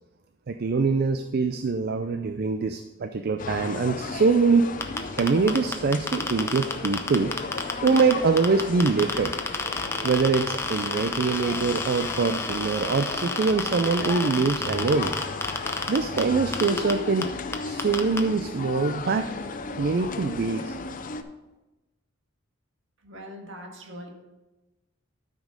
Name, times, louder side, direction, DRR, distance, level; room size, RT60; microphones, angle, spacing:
voice 1, 0.5-4.7 5.1-7.3 7.8-9.3 10.0-15.1 15.9-17.3 17.6-19.3 19.8-20.8, right 4 dB, 50° right, 8 dB, 0.4 m, -24 dB
sound 1, 3.4-21.2, left 4 dB, 45° left, 0.6 m, -35 dB
sound 2, 4.8-8.1 8.4-16.2 16.5-16.9 17.2-17.3 17.5-18.2, left 3 dB, 15° left, 0.8 m, -29 dB
voice 2, 23.0-24.1, equal, 70° right, 2 dB, 1.8 m, -41 dB
12.5 x 5.2 x 5.1 m, 1.1 s
head